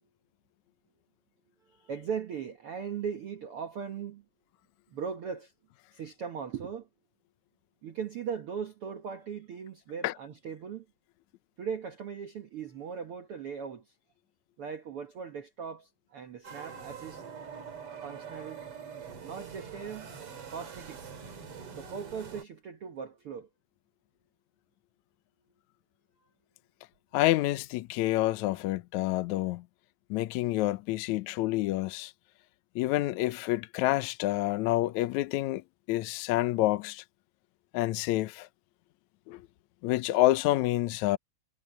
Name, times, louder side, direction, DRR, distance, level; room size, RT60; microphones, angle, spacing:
voice 1, 1.6-4.2 4.9-5.5 5.9-6.9 7.8-10.8 11.6-13.9 14.6-17.2 18.0-18.6 19.2-20.1 20.5-21.0 21.7-23.5, right 6 dB, 75° right, 1.3 m, -39 dB
sound 1, 16.4-22.4, right 6 dB, 40° right, 3.0 m, -44 dB
voice 2, 27.1-29.6 30.1-32.1 32.7-37.0 37.7-38.5 39.3-39.4 39.8-41.2, left 16 dB, 85° left, 1.6 m, -28 dB
omnidirectional pair, 4.4 m